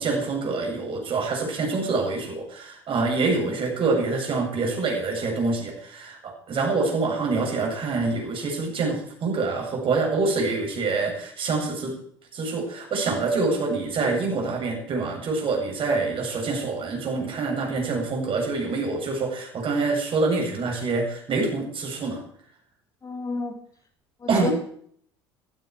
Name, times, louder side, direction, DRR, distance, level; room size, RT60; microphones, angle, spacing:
voice 1, 0.0-11.9 12.3-22.2 24.3-24.5, right 3 dB, 40° right, 1 dB, 7.8 m, -26 dB
voice 2, 23.0-23.6 24.2-24.5, left 3 dB, 25° left, 6 dB, 2.8 m, -30 dB
17.0 x 16.0 x 4.9 m, 0.62 s
figure-of-eight pair, 60°, 14 cm